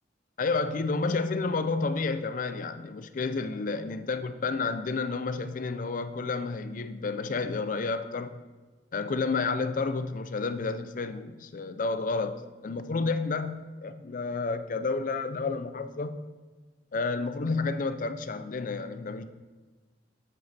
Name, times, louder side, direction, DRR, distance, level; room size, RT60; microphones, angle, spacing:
voice 1, 0.4-8.4 8.9-16.2 16.9-19.3, left 4 dB, 50° left, 11 dB, 0.5 m, -30 dB
8.3 x 6.8 x 4.1 m, 1.3 s
head